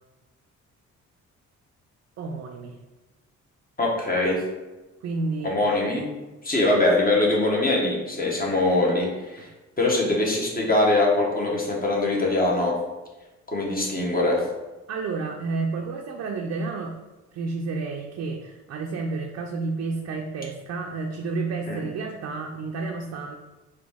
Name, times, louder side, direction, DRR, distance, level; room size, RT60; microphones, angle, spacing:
voice 1, 2.2-2.8 5.0-5.6 9.4-9.5 14.9-16.9 17.3-23.3, right 3 dB, 55° right, 1 dB, 0.5 m, -30 dB
voice 2, 3.8-4.4 5.4-6.1 6.4-9.5 9.8-12.7 13.5-14.4 21.7-21.8, left 2 dB, 30° left, -2 dB, 1.2 m, -22 dB
4.0 x 2.7 x 3.4 m, 1.1 s
cardioid pair, 90°, 30 cm